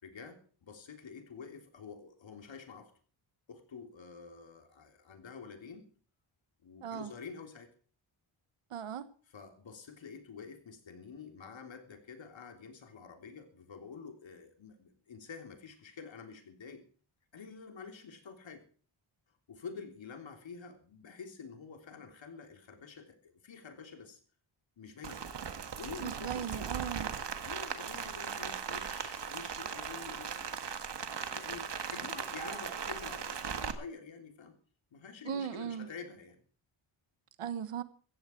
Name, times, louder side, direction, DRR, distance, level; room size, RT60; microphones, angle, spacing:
voice 1, 0.0-2.9 3.5-5.9 6.6-7.7 9.3-16.8 17.3-18.7 19.5-24.2 24.8-25.5 25.8-26.7 27.4-34.5 34.9-36.4, left 5 dB, 65° left, 3.5 m, -48 dB
voice 2, 6.8-7.1 8.7-9.1 26.0-27.1 35.2-35.9 37.4-37.8, right 8 dB, 90° right, 1.4 m, -37 dB
Rain, 25.0-33.7, right 7 dB, 55° right, 1.8 m, -38 dB
15.5 x 15.0 x 4.6 m
wide cardioid pair, 110°, 50 cm